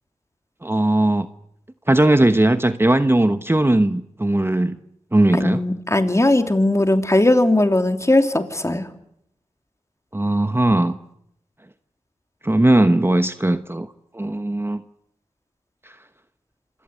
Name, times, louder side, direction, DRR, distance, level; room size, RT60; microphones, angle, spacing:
voice 1, 0.6-1.3 1.9-4.8 5.1-5.6 10.1-11.0 12.4-13.9 14.1-14.8, right 1 dB, 20° right, 1.1 m, -18 dB
voice 2, 5.3-8.9, left 1 dB, 20° left, 3.1 m, -18 dB
27.0 x 17.0 x 9.8 m
cardioid pair, 50°, 13 cm